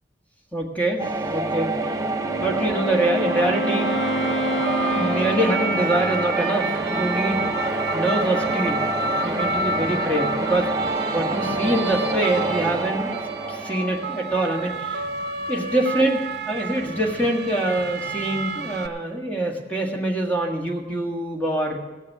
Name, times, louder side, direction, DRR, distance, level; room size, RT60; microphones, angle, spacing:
voice 1, 0.5-1.8 2.4-3.9 4.9-7.4 7.9-8.8 9.2-10.8 11.1-13.1 13.5-15.0 15.5-16.2 16.5-21.8, right 1 dB, 10° left, -1 dB, 1.7 m, -24 dB
sound 1, 1.0-14.8, right 2 dB, 20° right, 0.7 m, -28 dB
Wind instrument woodwind instrument, 2.0-6.4, right 1 dB, 90° left, 0.8 m, -28 dB
sound 2, 3.8-18.9, right 2 dB, 60° right, 0.9 m, -30 dB
16.0 x 6.4 x 8.6 m, 1.2 s
head